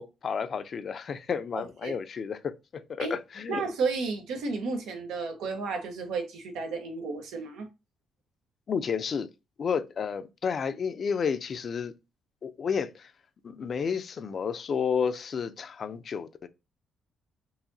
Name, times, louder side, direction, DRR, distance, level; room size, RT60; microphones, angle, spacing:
voice 1, 0.0-3.6 8.7-9.3 9.6-11.9 12.4-13.1 13.4-16.5, left 6 dB, 50° left, 0.5 m, -31 dB
voice 2, 1.5-2.0 3.0-3.1 3.5-7.7, right 4 dB, 90° right, 1.0 m, -32 dB
4.8 x 2.7 x 2.6 m
cardioid pair, 90°, 0 cm